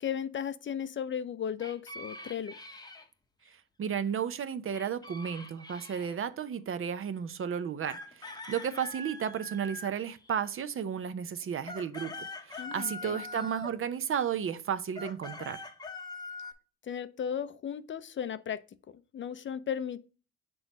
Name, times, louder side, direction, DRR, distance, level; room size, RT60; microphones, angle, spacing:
voice 1, 0.0-2.5 12.6-13.2 16.8-18.6 19.1-20.1, left 8 dB, 40° left, 0.5 m, -35 dB
sound 1, 1.6-3.1 4.7-6.2 7.8-10.6 11.4-13.8 14.9-16.5, left 2 dB, 15° left, 0.8 m, -43 dB
voice 2, 3.8-15.6, right 8 dB, 45° right, 0.6 m, -33 dB
6.1 x 3.1 x 5.1 m
cardioid pair, 90°, 30 cm